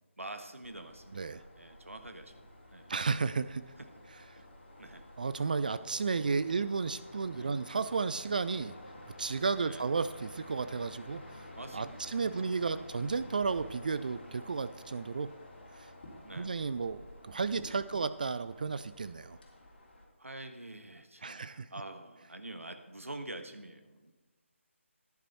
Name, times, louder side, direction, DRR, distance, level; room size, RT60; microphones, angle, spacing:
voice 1, 0.2-3.0 3.8-3.9 4.4-4.5 4.8-5.1 7.3-7.6 9.6-9.9 11.5-12.9 16.2-16.6 17.8-18.1 20.2-24.1, right 1 dB, 80° right, 7 dB, 1.3 m, -47 dB
sound 1, 0.6-20.0, left 1 dB, 45° left, 3.2 m, -51 dB
voice 2, 2.9-3.6 5.2-8.7 9.2-11.4 11.7-15.3 15.8-15.9 16.4-19.4 21.2-21.7, right 4 dB, 40° right, 14 dB, 0.3 m, -33 dB
10.5 x 10.0 x 4.3 m, 1.2 s
figure-of-eight pair, 150°, 7 cm